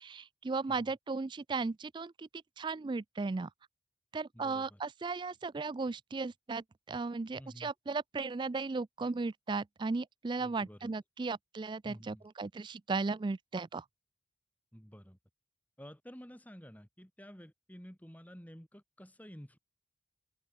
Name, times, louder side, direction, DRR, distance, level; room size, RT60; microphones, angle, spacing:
voice 1, 0.0-2.3 2.6-3.5 4.1-13.8, right 4 dB, 25° right, 0.3 m, -36 dB
voice 2, 4.3-4.8 7.4-7.7 10.4-10.9 11.8-12.3 14.7-15.2 15.8-19.6, equal, 10° left, 3.0 m, -51 dB
open air
head